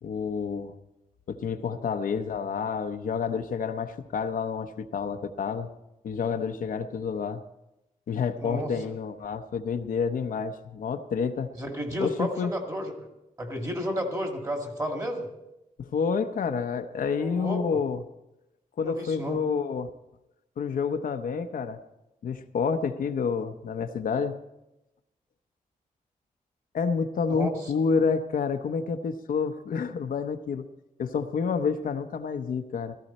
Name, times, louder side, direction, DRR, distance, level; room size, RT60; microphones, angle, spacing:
voice 1, 0.0-0.7 1.3-5.7 6.0-7.4 8.1-11.5 12.0-12.5 15.8-18.0 18.8-19.9 20.6-21.8 22.2-24.4 26.7-30.7 31.0-32.9, left 5 dB, 75° left, 7 dB, 0.8 m, -29 dB
voice 2, 11.5-13.1 13.4-15.3 17.2-17.6 18.8-19.4 27.4-27.5, equal, 25° right, 3 dB, 2.0 m, -32 dB
16.0 x 14.5 x 4.2 m, 0.93 s
wide cardioid pair, 165°, 14 cm